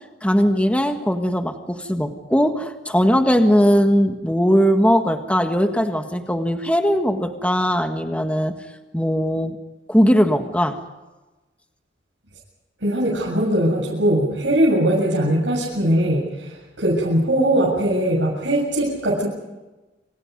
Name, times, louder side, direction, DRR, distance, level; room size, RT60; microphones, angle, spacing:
voice 1, 0.2-8.5 8.9-9.6 9.9-10.8, equal, 5° left, 5 dB, 1.7 m, -19 dB
voice 2, 12.8-19.3, right 1 dB, 80° right, -5 dB, 7.4 m, -20 dB
28.0 x 27.5 x 5.4 m, 1.1 s
head